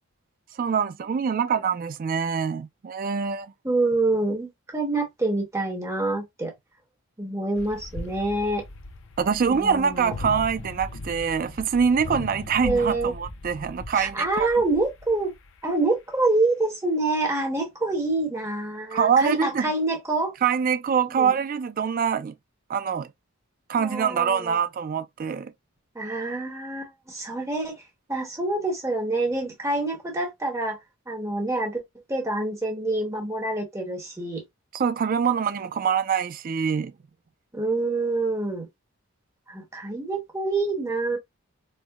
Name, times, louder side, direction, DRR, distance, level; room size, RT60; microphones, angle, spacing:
voice 1, 0.6-3.5 9.2-14.5 18.9-19.7 20.4-22.3 22.7-23.1 23.7-25.5 34.7-36.9, right 6 dB, 40° right, 0.3 m, -24 dB
voice 2, 3.6-6.5 7.2-8.6 9.5-10.1 12.6-13.1 13.9-15.3 15.6-20.3 21.2-21.3 23.8-24.6 25.9-27.8 28.1-30.8 31.1-31.8 32.1-34.4 37.5-38.7 39.5-41.2, right 2 dB, 15° right, 1.1 m, -26 dB
sound 1, 7.5-15.7, left 2 dB, 60° left, 0.6 m, -39 dB
4.5 x 2.1 x 2.3 m
head